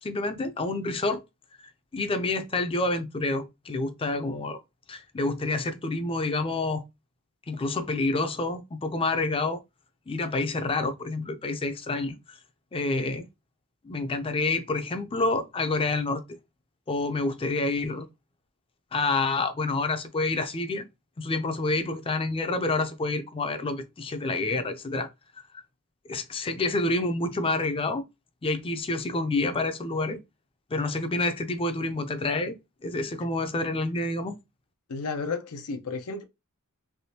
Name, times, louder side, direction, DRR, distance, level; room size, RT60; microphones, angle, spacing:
voice 1, 0.0-1.2 1.9-4.6 4.9-6.8 7.5-9.6 10.1-12.4 12.7-13.2 13.8-16.2 16.9-18.1 18.9-20.8 21.2-25.1 26.1-28.0 28.4-30.2 30.7-32.6 32.8-34.4, left 2 dB, 25° left, 0.4 m, -28 dB
voice 2, 34.9-36.2, left 4 dB, 90° left, 0.6 m, -32 dB
3.4 x 3.0 x 2.7 m
head